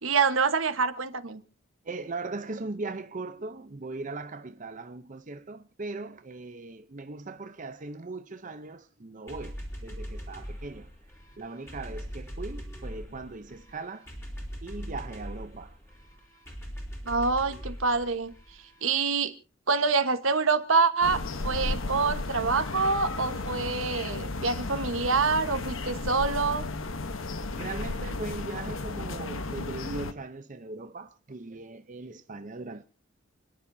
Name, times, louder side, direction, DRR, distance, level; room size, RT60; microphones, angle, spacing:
voice 1, 0.0-1.4 17.0-18.3 18.8-19.3 19.7-26.6, right 4 dB, 85° right, 1.3 m, -26 dB
voice 2, 1.8-10.9 11.4-14.1 14.6-16.0 27.5-32.8, right 3 dB, 40° right, 0.7 m, -39 dB
sound 1, 9.3-18.8, equal, 15° left, 3.8 m, -41 dB
sound 2, 21.0-30.1, left 3 dB, 85° left, 1.1 m, -34 dB
29.0 x 10.5 x 2.7 m
head